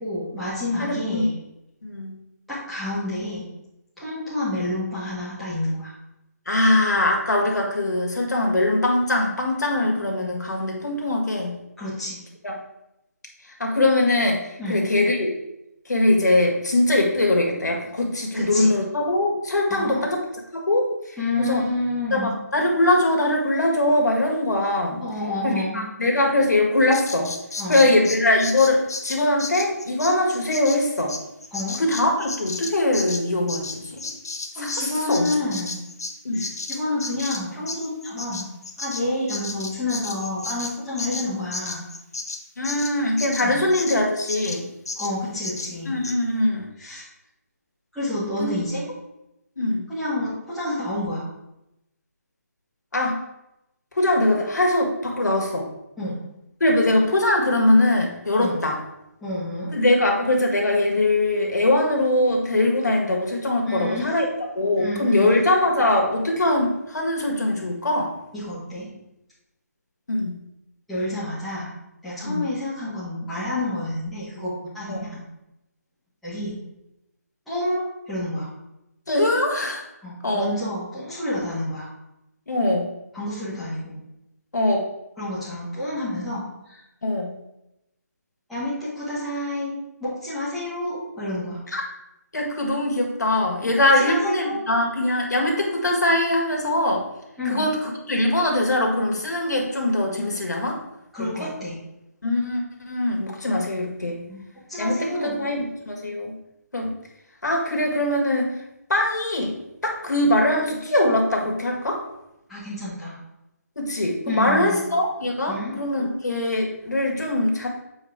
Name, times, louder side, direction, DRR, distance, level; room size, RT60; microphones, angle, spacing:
voice 1, 0.0-1.3 2.5-3.4 4.0-5.9 11.8-12.2 14.6-14.8 18.3-18.7 19.7-20.0 21.2-22.4 25.0-25.8 27.6-27.8 31.5-31.8 34.5-35.8 36.3-38.5 38.8-41.8 43.4-43.6 44.9-46.0 46.8-47.0 47.9-48.8 49.9-51.2 56.0-56.2 58.4-58.6 59.2-59.7 63.7-64.1 64.8-65.3 68.3-68.9 70.9-71.7 72.0-75.2 76.2-76.5 77.5-78.5 80.0-81.9 83.1-84.0 85.2-86.8 88.5-91.6 93.6-94.6 97.4-97.7 101.1-101.7 104.3-104.4 104.7-105.4 112.5-113.1 114.3-114.8 115.5-115.8, left 1 dB, ahead, -14 dB, 1.5 m, -29 dB
voice 2, 0.8-1.3 1.8-2.1 6.5-11.6 12.4-12.5 13.6-15.3 15.9-20.2 20.5-21.7 22.1-25.1 25.4-27.4 27.7-31.2 31.8-34.1 34.5-35.4 36.2-36.4 42.6-44.7 45.9-46.7 48.4-48.5 49.6-49.9 52.9-53.2 53.9-55.7 56.6-58.8 59.7-64.3 64.6-68.1 70.1-70.4 72.2-72.5 74.9-75.1 79.1-79.8 80.2-80.5 82.5-82.9 84.5-84.9 87.0-87.3 91.7-91.8 92.3-97.1 97.4-100.8 101.2-101.5 102.2-104.2 104.8-106.4 106.7-106.9 107.4-108.5 108.9-109.5 109.8-112.0 113.8-117.7, left 1 dB, 85° left, 0 dB, 1.8 m, -22 dB
Bird vocalization bird call bird song, 26.9-34.8 35.1-44.0 44.3-44.6 44.9-45.1 45.4-45.7 46.0-46.2, left 3 dB, 65° left, 0.8 m, -33 dB
7.3 x 4.6 x 3.6 m, 0.89 s
hypercardioid pair, 170°, 9 cm